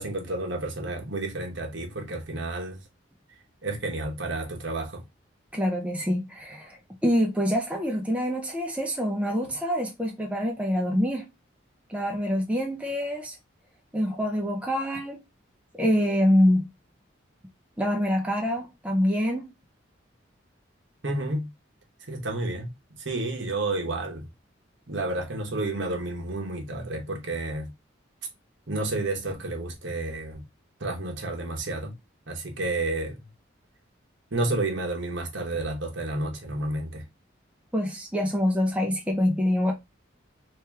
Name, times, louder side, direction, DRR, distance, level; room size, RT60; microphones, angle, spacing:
voice 1, 0.0-2.8 3.6-5.0 21.0-21.5 22.1-22.7 23.0-24.3 24.9-27.7 28.7-30.4 30.8-31.9 32.3-33.2 34.3-37.0, right 2 dB, 70° right, 1.1 m, -30 dB
voice 2, 5.5-11.3 11.9-13.4 13.9-15.2 15.7-16.7 17.8-19.5 37.7-39.7, equal, 5° right, 0.6 m, -25 dB
3.1 x 3.0 x 3.4 m
head